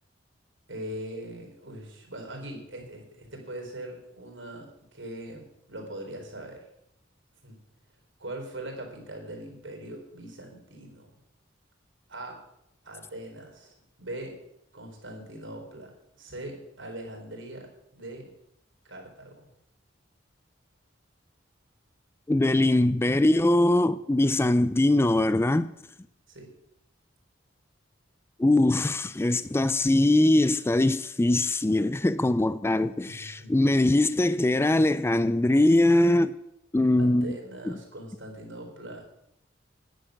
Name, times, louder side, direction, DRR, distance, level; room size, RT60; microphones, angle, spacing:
voice 1, 0.7-6.6 7.4-7.6 8.2-11.1 12.1-12.4 12.8-14.4 14.7-18.3 18.8-19.5 24.2-24.3 26.3-26.5 33.1-33.7 37.0-39.2, right 1 dB, 85° right, 4.1 m, -41 dB
voice 2, 22.3-25.7 28.4-36.4 36.7-37.4 37.7-37.8, left 1 dB, 15° left, 0.4 m, -22 dB
10.5 x 10.0 x 6.4 m
head